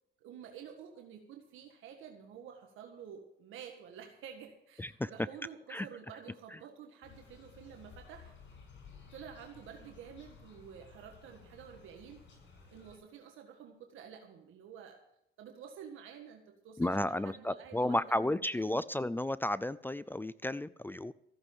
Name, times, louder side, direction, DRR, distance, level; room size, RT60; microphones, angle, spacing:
voice 1, 0.2-8.3 9.1-12.2 12.7-15.0 15.4-18.4 18.6-18.7, right 8 dB, 85° right, 3 dB, 1.7 m, -50 dB
voice 2, 4.8-5.1 5.7-5.9 16.8-21.1, left 1 dB, 10° left, 17 dB, 0.4 m, -33 dB
sound 1, 7.0-13.0, left 6 dB, 70° left, 7.1 m, -56 dB
15.0 x 8.2 x 7.2 m, 0.80 s
cardioid pair, 90°, 20 cm